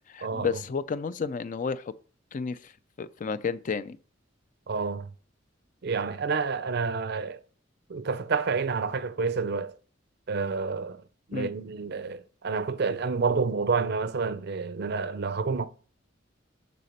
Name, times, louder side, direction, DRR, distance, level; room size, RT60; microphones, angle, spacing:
voice 1, 0.1-1.9 2.3-2.7 3.0-4.0 11.3-11.5, left 5 dB, 40° left, 0.4 m, -31 dB
voice 2, 4.7-5.1 5.8-7.4 7.9-9.7 10.3-11.0 11.3-15.7, right 4 dB, 55° right, 0.5 m, -29 dB
6.8 x 4.2 x 6.5 m
head